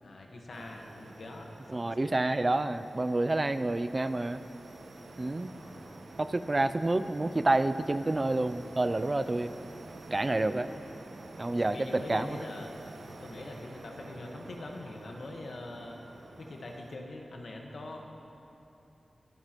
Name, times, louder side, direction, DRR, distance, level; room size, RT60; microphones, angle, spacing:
voice 1, 0.0-2.1 5.5-6.0 11.5-12.7 13.2-16.0 16.4-18.0, left 2 dB, 80° left, 1 dB, 1.3 m, -43 dB
sound 1, 0.5-17.0, right 2 dB, 75° right, 1.0 m, -49 dB
voice 2, 1.7-4.4 5.2-5.5 6.2-9.5 10.1-10.7 11.4-12.4, right 2 dB, 30° right, 12 dB, 0.4 m, -28 dB
22.5 x 9.2 x 3.0 m, 2.9 s
wide cardioid pair, 80°, 0 cm